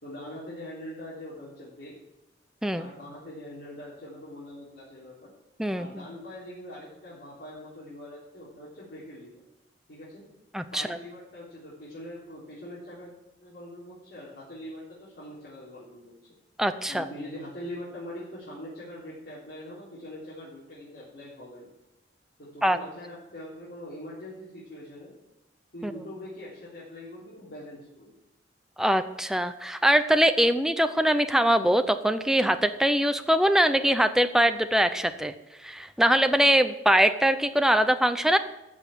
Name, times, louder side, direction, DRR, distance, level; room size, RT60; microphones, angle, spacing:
voice 1, 0.0-2.0 2.8-5.3 5.8-9.4 9.9-10.3 10.7-13.1 13.4-16.2 16.9-21.7 22.4-25.2 25.7-28.1, left 1 dB, 65° left, -8 dB, 3.7 m, -42 dB
voice 2, 5.6-6.1 10.5-11.0 16.6-17.0 22.6-22.8 25.8-25.9 28.8-35.3 35.6-38.4, equal, 5° right, 9 dB, 0.6 m, -22 dB
13.5 x 6.3 x 8.5 m, 0.94 s
head